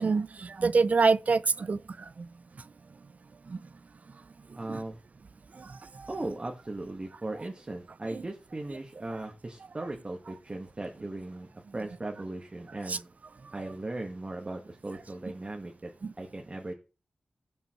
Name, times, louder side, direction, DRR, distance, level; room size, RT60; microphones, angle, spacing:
voice 1, 0.0-1.8 3.5-3.6 4.7-4.8 12.9-13.0 16.0-16.1, right 4 dB, 55° right, 0.3 m, -25 dB
voice 2, 4.5-5.0 6.1-13.1 13.5-15.9 16.2-16.7, right 2 dB, 35° right, 1.3 m, -38 dB
15.5 x 5.5 x 3.0 m
wide cardioid pair, 70°, 3 cm